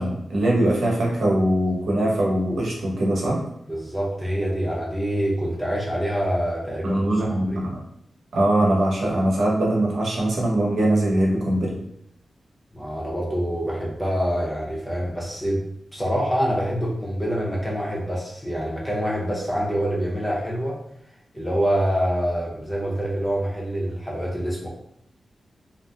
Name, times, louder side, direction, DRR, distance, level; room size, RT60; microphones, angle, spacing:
voice 1, 0.0-3.4 6.8-7.8 8.3-11.8, right 1 dB, 90° right, -3 dB, 0.8 m, -22 dB
voice 2, 3.7-7.6 12.7-15.6 15.9-20.8 21.3-24.7, equal, 10° left, -4 dB, 0.6 m, -26 dB
2.6 x 2.0 x 3.3 m, 0.73 s
wide cardioid pair, 175°, 0 cm